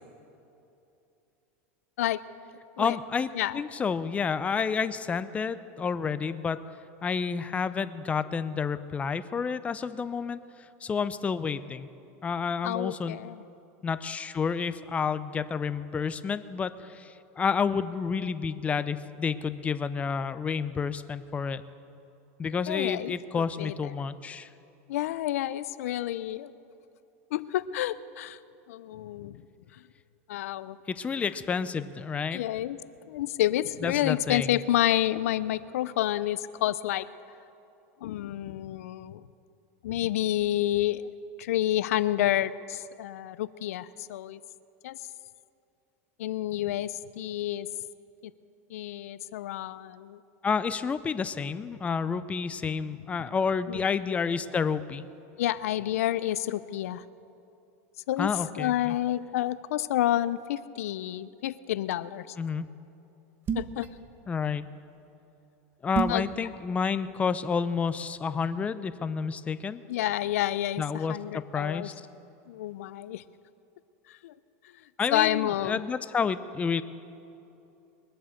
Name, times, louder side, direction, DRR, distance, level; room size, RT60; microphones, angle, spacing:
voice 1, 2.8-6.6 7.0-10.4 10.8-11.9 12.2-13.2 13.8-21.6 22.4-24.5 31.0-32.4 33.8-34.6 50.4-55.0 58.2-58.9 62.4-62.7 64.3-64.7 65.8-69.8 70.8-71.9 75.0-76.8, left 6 dB, 15° left, 13 dB, 0.5 m, -30 dB
voice 2, 12.6-13.4 22.7-24.1 24.9-26.5 27.3-28.4 28.7-29.4 30.3-30.8 32.3-32.8 33.1-37.1 38.0-39.2 39.8-41.1 41.4-44.4 44.8-45.0 46.2-47.7 48.7-50.2 53.7-53.8 55.4-57.0 58.1-62.4 63.5-63.9 66.1-66.2 69.9-71.9 72.5-73.2 74.1-74.3 75.1-75.8, left 13 dB, 85° left, 16 dB, 0.5 m, -29 dB
sound 1, 63.5-63.9 65.9-66.3, right 6 dB, 30° right, 1.0 m, -29 dB
22.0 x 7.9 x 6.5 m, 2.8 s
supercardioid pair, 140°, 8 cm